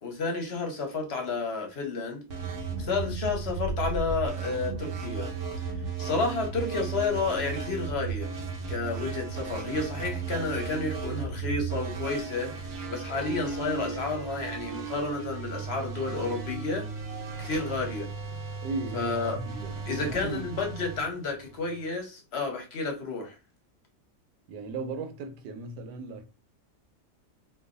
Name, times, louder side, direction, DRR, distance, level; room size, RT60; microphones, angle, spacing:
voice 1, 0.0-2.2 2.8-5.3 6.0-8.3 8.7-12.5 12.9-16.9 17.4-18.1 18.9-19.4 19.9-23.4, left 3 dB, 50° left, 0.9 m, -31 dB
sound 1, 2.3-21.8, right 5 dB, 55° right, 1.1 m, -35 dB
voice 2, 18.6-19.7 20.0-20.5 24.5-26.3, right 3 dB, 85° right, 1.2 m, -36 dB
3.1 x 2.3 x 3.7 m
omnidirectional pair, 1.8 m